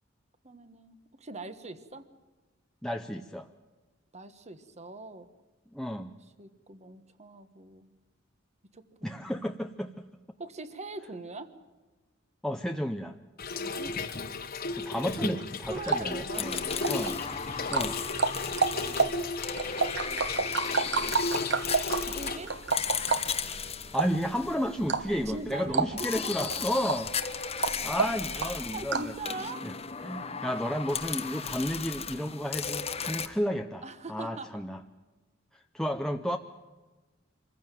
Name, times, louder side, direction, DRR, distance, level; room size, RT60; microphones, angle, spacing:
voice 1, 0.4-2.1 4.1-5.3 6.1-7.9 8.7-9.4 10.4-11.5 13.6-14.1 15.7-16.9 18.6-19.2 21.0-21.5 22.0-22.5 25.3-26.6 28.0-29.7 33.8-34.5, right 2 dB, 35° right, 11 dB, 1.4 m, -42 dB
voice 2, 2.8-3.5 5.7-6.1 9.0-10.0 12.4-13.2 14.8-16.6 16.9-17.2 17.7-18.0 23.9-27.1 27.8-29.1 29.6-29.7 30.0-33.8 34.1-34.8 35.5-36.4, equal, 5° left, 4 dB, 0.7 m, -32 dB
Trickle dribble / Fill (with liquid), 13.4-22.4, left 3 dB, 50° left, 1.4 m, -35 dB
sound 1, 15.6-29.2, right 4 dB, 60° right, 1.1 m, -32 dB
sound 2, 16.3-25.2 26.0-33.3, left 6 dB, 30° left, 1.2 m, -36 dB
25.0 x 15.0 x 9.2 m, 1.2 s
head